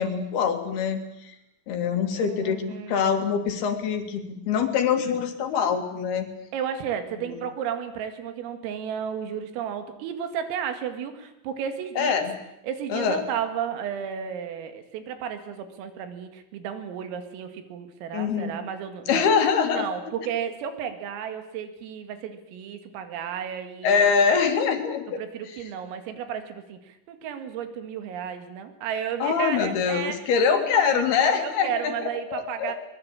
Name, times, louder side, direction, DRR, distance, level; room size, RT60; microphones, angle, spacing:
voice 1, 0.0-1.3 1.7-6.3 7.3-7.4 12.0-12.3 12.9-13.2 18.1-18.5 19.1-19.9 23.8-25.2 29.2-31.9 32.3-32.7, left 6 dB, 55° left, 6 dB, 3.8 m, -24 dB
voice 2, 2.2-3.1 6.5-12.1 12.6-19.3 19.7-24.0 25.2-32.8, right 8 dB, 80° right, 8 dB, 4.7 m, -33 dB
23.0 x 22.0 x 8.8 m, 0.82 s
omnidirectional pair, 5.9 m